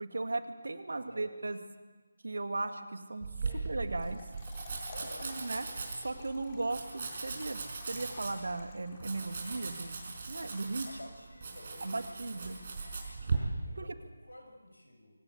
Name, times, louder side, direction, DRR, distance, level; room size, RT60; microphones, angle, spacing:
voice 1, 0.0-1.6 2.2-3.3 3.6-4.2 5.2-7.6 7.9-10.9 11.8-12.6 13.8-14.0, right 2 dB, 55° right, 8 dB, 1.9 m, -37 dB
voice 2, 0.9-1.3 3.5-3.6 4.9-5.4 10.8-15.2, left 1 dB, 80° left, 3 dB, 6.5 m, -52 dB
Domestic sounds home sounds, 3.2-13.4, right 4 dB, 35° right, 5.2 m, -39 dB
Trickle dribble / Fill (with liquid), 3.8-11.2, left 3 dB, 20° left, 3.5 m, -54 dB
24.5 x 18.0 x 8.5 m, 1.3 s
figure-of-eight pair, 155°, 0 cm